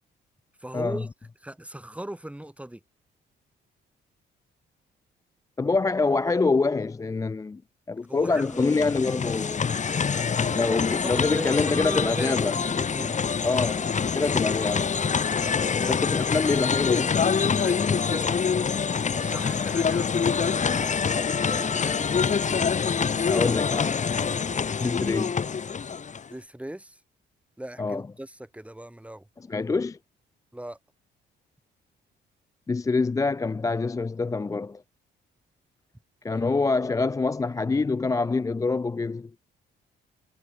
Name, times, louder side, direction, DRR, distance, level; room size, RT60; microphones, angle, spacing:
voice 1, 0.6-1.1 1.4-2.8 8.1-8.7 10.1-13.2 15.3-16.0 17.6-18.4 19.1-22.1 24.5-24.7 26.3-27.0 27.6-29.3 30.5-30.8 36.3-36.5, right 1 dB, 5° right, 5.3 m, -39 dB
voice 2, 5.6-7.6 7.9-9.6 10.6-12.6 13.4-13.9 14.1-15.0 15.8-17.1 17.4-17.6 23.3-24.1 24.8-25.3 27.8-28.0 29.5-30.0 32.7-34.8 36.2-39.3, left 3 dB, 15° left, 0.4 m, -25 dB
sound 1, 8.3-26.3, left 6 dB, 40° left, 1.8 m, -26 dB
cardioid pair, 90°, 20 cm